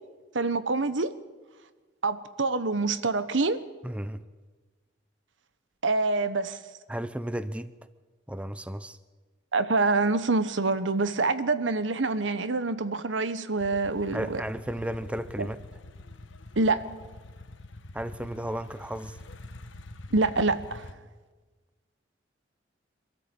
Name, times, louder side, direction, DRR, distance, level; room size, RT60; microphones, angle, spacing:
voice 1, 0.3-1.1 2.0-3.6 5.8-6.6 9.5-14.4 15.4-15.5 16.6-16.8 20.1-20.9, right 3 dB, 80° right, 13 dB, 1.1 m, -26 dB
voice 2, 3.8-4.2 6.9-7.7 8.3-9.0 14.1-15.6 17.9-19.2, right 1 dB, 5° right, 13 dB, 0.6 m, -34 dB
sound 1, 13.6-20.9, left 2 dB, 85° left, 1.3 m, -45 dB
25.0 x 13.5 x 8.5 m, 1.3 s
head